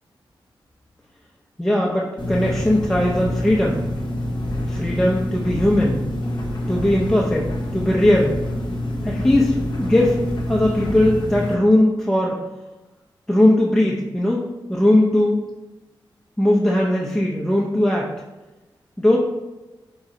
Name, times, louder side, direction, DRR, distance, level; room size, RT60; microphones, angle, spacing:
voice 1, 1.6-3.8 4.7-6.0 6.7-8.4 9.0-10.2 10.5-12.3 13.3-15.5 16.4-18.1 19.0-19.2, left 1 dB, 5° left, -3 dB, 0.5 m, -19 dB
sound 1, 2.2-11.5, left 1 dB, 60° left, 0.8 m, -26 dB
3.7 x 2.3 x 4.1 m, 1.1 s
cardioid pair, 60°, 9 cm